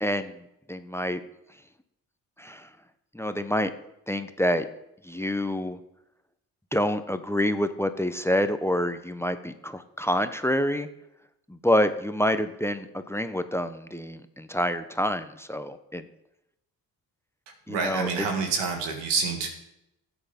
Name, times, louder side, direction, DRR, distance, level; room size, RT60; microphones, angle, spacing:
voice 1, 0.0-0.3 0.7-1.2 2.4-2.7 3.1-3.7 4.1-4.6 5.0-5.8 6.7-10.9 11.5-16.1 17.7-18.3, equal, 5° left, 11 dB, 1.0 m, -27 dB
voice 2, 17.7-19.5, right 4 dB, 85° right, 4 dB, 2.1 m, -27 dB
12.5 x 8.1 x 5.4 m, 0.85 s
supercardioid pair, 45°, 42 cm